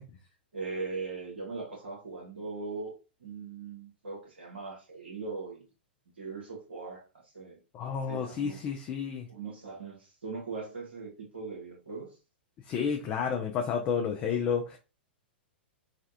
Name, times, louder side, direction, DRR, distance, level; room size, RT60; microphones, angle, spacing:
voice 1, 0.5-2.9 3.2-5.6 6.2-7.0 7.3-7.6 8.1-8.6 9.3-12.1, right 4 dB, 80° right, 1.3 m, -39 dB
voice 2, 7.7-9.3 12.7-14.8, left 7 dB, 30° left, 0.4 m, -31 dB
3.3 x 2.3 x 2.7 m
figure-of-eight pair, 105°, 6 cm